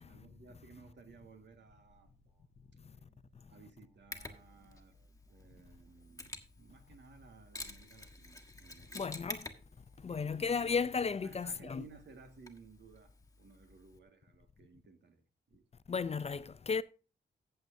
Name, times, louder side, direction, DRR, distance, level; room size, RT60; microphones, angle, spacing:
voice 1, 0.0-2.1 3.5-5.0 5.3-9.2 10.1-15.2 15.5-15.7, right 4 dB, 75° right, 1.9 m, -58 dB
sound 1, 0.7-13.0, right 3 dB, 55° right, 4.3 m, -71 dB
Mechanisms, 4.1-14.0, left 2 dB, 20° left, 1.4 m, -51 dB
voice 2, 8.9-9.5 10.0-11.8 15.9-16.8, left 5 dB, 35° left, 0.5 m, -34 dB
14.5 x 7.7 x 2.7 m
cardioid pair, 90°, 18 cm